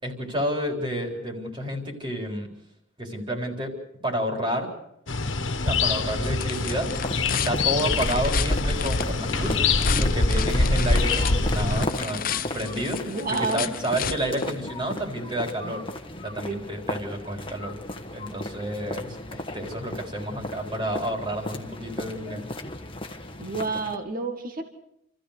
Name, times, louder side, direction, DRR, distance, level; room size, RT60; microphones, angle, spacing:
voice 1, 0.0-2.5 3.0-3.8 4.0-4.7 5.6-6.9 7.3-13.0 13.3-15.8 16.2-17.7 18.1-22.5, equal, 25° right, 2 dB, 4.1 m, -30 dB
sound 1, 5.1-11.9, left 3 dB, 65° left, 1.6 m, -24 dB
sound 2, 5.5-15.0, left 8 dB, 45° left, 0.7 m, -34 dB
sound 3, 6.9-24.0, left 1 dB, 25° left, 1.4 m, -36 dB
voice 2, 13.1-13.7 16.4-16.6 23.4-24.7, right 3 dB, 45° right, 6 dB, 2.0 m, -29 dB
28.0 x 14.5 x 6.7 m, 0.77 s
head